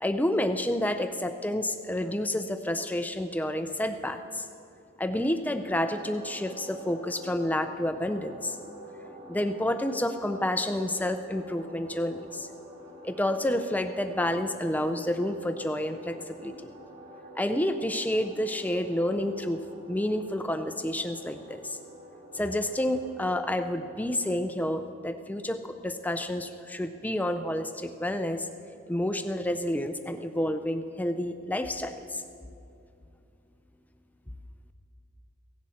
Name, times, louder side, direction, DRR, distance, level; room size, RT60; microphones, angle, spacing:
voice 1, 0.0-4.5 5.0-8.6 9.3-12.5 13.0-16.7 17.4-19.6 19.9-21.8 22.3-28.5 28.9-32.2, left 1 dB, 10° left, 8 dB, 0.5 m, -29 dB
sound 1, 5.6-24.1, right 1 dB, 40° right, 4.5 m, -48 dB
16.5 x 16.0 x 4.3 m, 2.6 s
head